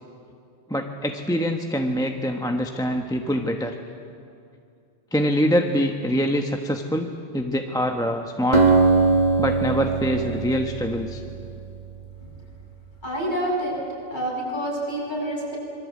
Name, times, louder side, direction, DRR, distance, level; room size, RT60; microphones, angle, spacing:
voice 1, 0.7-3.7 5.1-8.6 9.4-11.2, equal, 5° left, 3 dB, 1.1 m, -24 dB
Acoustic guitar, 8.5-12.1, right 4 dB, 40° right, 2.1 m, -21 dB
voice 2, 13.0-13.8 14.1-15.6, right 1 dB, 40° left, -4 dB, 7.7 m, -27 dB
26.5 x 22.5 x 8.5 m, 2.5 s
omnidirectional pair, 1.2 m